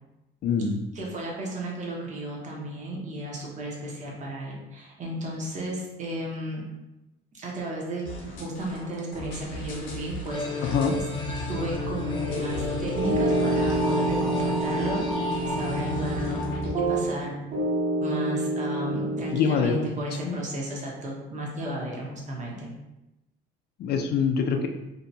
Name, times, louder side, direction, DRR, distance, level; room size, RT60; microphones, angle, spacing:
voice 1, 0.4-0.8 10.6-11.0 19.3-19.9 20.2-20.4 23.8-24.7, left 6 dB, 50° left, 5 dB, 0.4 m, -24 dB
voice 2, 0.9-6.6 7.3-10.8 11.5-16.6 16.9-17.3 18.0-22.7, right 1 dB, 35° right, -2 dB, 0.8 m, -34 dB
sound 1, 8.0-16.7, equal, 70° left, 0.8 m, -39 dB
sound 2, 10.3-17.3, left 3 dB, 20° left, 0.7 m, -32 dB
sound 3, 12.3-17.2 17.5-19.7, right 2 dB, 60° right, 1.3 m, -28 dB
2.7 x 2.2 x 2.6 m, 0.97 s
cardioid pair, 120°, 21 cm